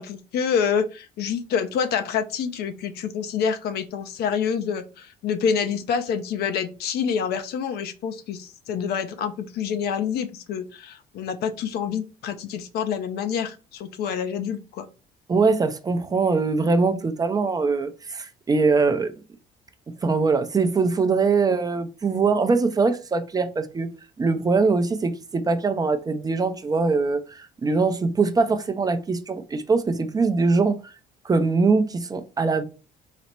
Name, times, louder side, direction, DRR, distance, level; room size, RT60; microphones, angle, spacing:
voice 1, 0.0-14.9, left 7 dB, 70° left, 0.6 m, -27 dB
voice 2, 15.3-19.1 20.0-23.9 24.2-30.9 31.2-32.6, right 4 dB, 20° right, 0.5 m, -22 dB
4.1 x 2.1 x 4.4 m
cardioid pair, 110°, 17 cm